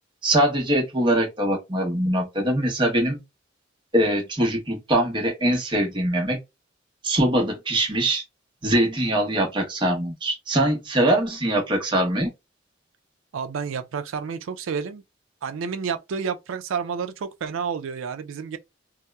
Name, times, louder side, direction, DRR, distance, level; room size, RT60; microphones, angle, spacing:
voice 1, 0.2-3.2 3.9-6.4 7.0-8.2 8.6-12.3, right 1 dB, 25° right, 0.8 m, -22 dB
voice 2, 13.3-15.0 15.4-18.6, right 6 dB, 85° right, 0.4 m, -30 dB
2.7 x 2.0 x 2.2 m
head